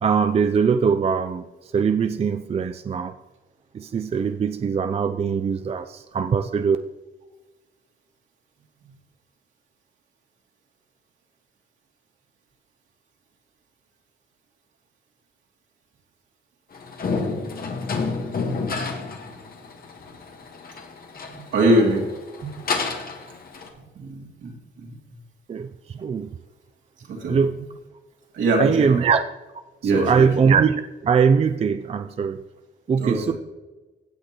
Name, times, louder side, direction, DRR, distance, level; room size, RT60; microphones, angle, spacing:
voice 1, 0.0-3.1 3.7-6.8 25.5-26.3 27.3-27.6 28.6-29.2 29.8-32.4 32.9-33.3, right 6 dB, 30° right, 9 dB, 0.4 m, -21 dB
sound 1, 16.7-23.7, left 4 dB, 50° left, 1.6 m, -30 dB
voice 2, 21.5-22.0 22.4-22.5 24.0-24.9 27.1-27.4 28.3-29.0 29.8-30.3 33.0-33.3, right 1 dB, 70° right, -1 dB, 2.9 m, -22 dB
16.0 x 6.4 x 3.1 m, 1.2 s
cardioid pair, 90°, 20 cm